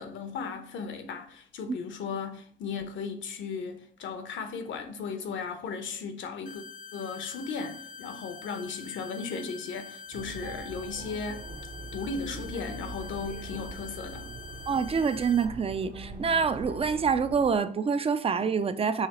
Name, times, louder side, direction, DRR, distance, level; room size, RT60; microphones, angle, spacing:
voice 1, 0.0-6.6 6.9-11.4 11.9-14.3, left 5 dB, 75° left, 0.8 m, -36 dB
sound 1, 6.5-15.5, left 5 dB, 40° left, 0.5 m, -45 dB
sound 2, 10.1-17.6, right 3 dB, 45° right, 0.8 m, -42 dB
voice 2, 14.7-19.1, right 6 dB, 30° right, 0.4 m, -26 dB
5.7 x 3.2 x 2.9 m
cardioid pair, 90°, 20 cm